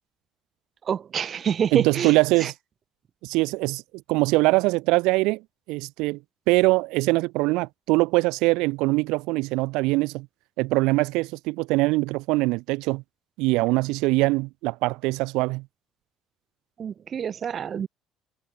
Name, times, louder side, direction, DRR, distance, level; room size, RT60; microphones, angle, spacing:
voice 1, 0.8-2.5 16.8-17.9, right 8 dB, 45° right, 0.6 m, -27 dB
voice 2, 1.7-2.5 3.2-3.8 4.1-5.4 5.7-6.2 6.5-10.3 10.6-13.0 13.4-15.6, right 23 dB, 85° right, 0.9 m, -23 dB
cardioid pair, 100°, 0 cm